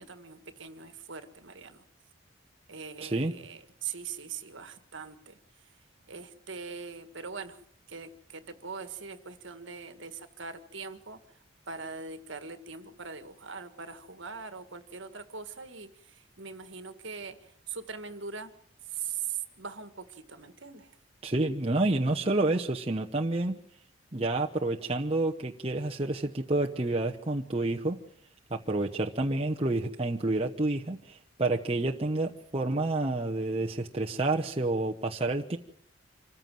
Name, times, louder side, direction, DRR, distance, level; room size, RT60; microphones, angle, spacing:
voice 1, 0.0-1.8 2.7-5.4 6.1-7.6 7.9-11.2 11.7-17.4 17.7-18.5 18.9-20.9, right 6 dB, 65° right, 10 dB, 1.7 m, -41 dB
voice 2, 3.0-3.3 21.2-23.6 24.1-28.0 28.5-35.6, right 2 dB, 30° right, 1 dB, 0.9 m, -29 dB
26.0 x 15.0 x 7.6 m, 0.64 s
head